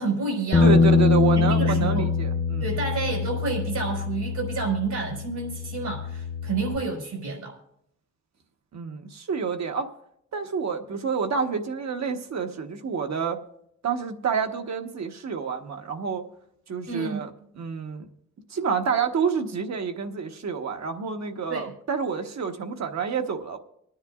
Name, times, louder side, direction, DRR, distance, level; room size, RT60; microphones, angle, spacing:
voice 1, 0.0-0.8 1.3-2.1 2.6-7.6 16.9-17.2 21.5-21.7, right 4 dB, 85° right, 0 dB, 4.8 m, -29 dB
Bass guitar, 0.5-6.8, left 4 dB, 30° left, 0.8 m, -23 dB
voice 2, 0.6-2.7 8.7-9.9 10.3-13.4 13.8-16.2 16.7-18.1 18.5-23.6, right 6 dB, 65° right, 5 dB, 1.2 m, -28 dB
26.0 x 10.0 x 2.4 m, 0.72 s
cardioid pair, 90°, 29 cm